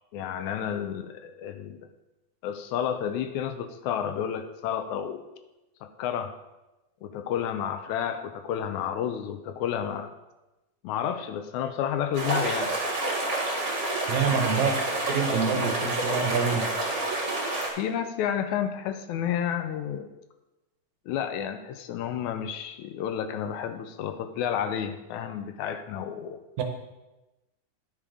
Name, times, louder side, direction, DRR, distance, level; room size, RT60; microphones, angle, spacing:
voice 1, 0.1-1.9 2.4-5.2 5.8-6.3 7.0-10.1 10.8-12.7 17.7-20.1 21.1-26.4, left 9 dB, 80° left, 8 dB, 1.9 m, -31 dB
sound 1, 12.1-17.7, right 2 dB, 25° right, 1.8 m, -28 dB
voice 2, 14.1-14.8 15.1-16.7 26.6-26.7, right 6 dB, 75° right, 5 dB, 2.2 m, -26 dB
11.0 x 6.4 x 4.9 m, 1.0 s
omnidirectional pair, 3.6 m